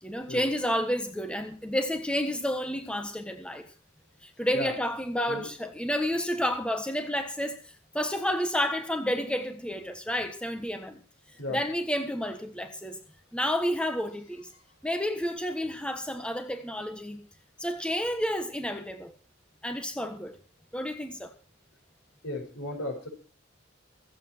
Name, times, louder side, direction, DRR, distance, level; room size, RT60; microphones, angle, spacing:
voice 1, 0.0-3.7 4.2-11.0 11.5-13.0 13.3-14.5 14.8-17.2 17.6-19.1 19.6-20.4 20.7-21.3, equal, 5° left, 1.3 m, -30 dB
voice 2, 22.2-23.1, left 1 dB, 70° left, 5.4 m, -35 dB
24.5 x 8.5 x 4.4 m
head